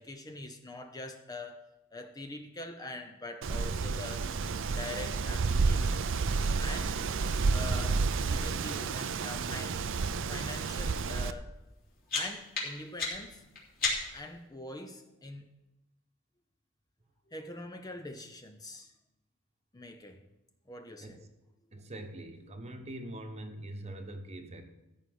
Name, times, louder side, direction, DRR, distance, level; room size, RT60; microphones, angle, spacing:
voice 1, 0.0-4.3 4.8-6.2 6.6-7.0 7.5-9.8 10.3-11.6 12.1-13.4 14.0-15.5 17.3-18.9 19.7-20.3 20.7-21.3, left 2 dB, 20° left, 6 dB, 0.6 m, -44 dB
Wind, 3.4-11.3, right 4 dB, 60° right, 0.5 m, -30 dB
sound 1, 11.6-14.3, left 3 dB, 45° left, 3.4 m, -35 dB
voice 2, 21.7-24.6, right 1 dB, 30° right, 5 dB, 1.1 m, -43 dB
14.0 x 4.8 x 7.8 m, 0.96 s
head